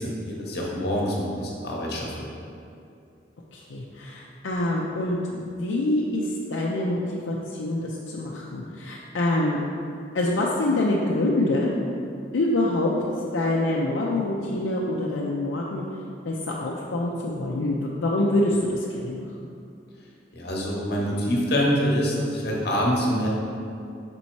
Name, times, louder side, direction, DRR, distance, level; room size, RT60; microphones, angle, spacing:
voice 1, 0.0-2.3 20.3-23.3, equal, 55° left, -2 dB, 1.0 m, -25 dB
voice 2, 3.5-9.6 10.1-11.7 12.3-12.9 13.3-15.8 16.2-19.3, left 1 dB, 80° left, -4 dB, 0.5 m, -25 dB
5.3 x 4.1 x 4.5 m, 2.4 s
head